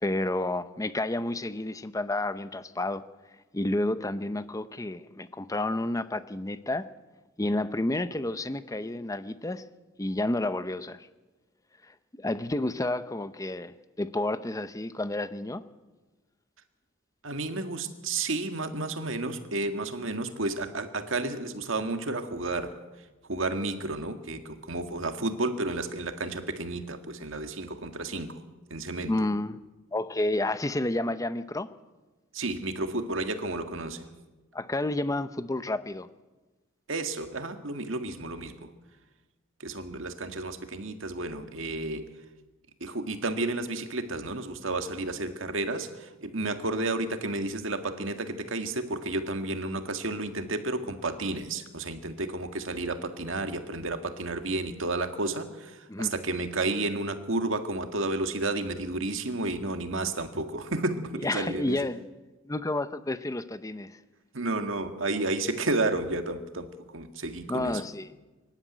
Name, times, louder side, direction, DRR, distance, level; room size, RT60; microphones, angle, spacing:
voice 1, 0.0-3.0 3.5-6.9 7.4-9.6 10.0-11.1 11.9-15.6 29.1-29.6 29.9-31.7 34.5-36.1 55.9-56.1 61.2-62.0 62.5-63.9 67.5-68.1, left 2 dB, 15° left, 12 dB, 0.6 m, -30 dB
voice 2, 17.2-22.8 23.3-28.3 28.7-29.1 32.3-34.1 36.9-38.7 39.6-42.1 42.8-61.8 64.3-67.8, right 2 dB, 75° right, 7 dB, 1.8 m, -31 dB
24.0 x 11.5 x 9.3 m, 1.2 s
head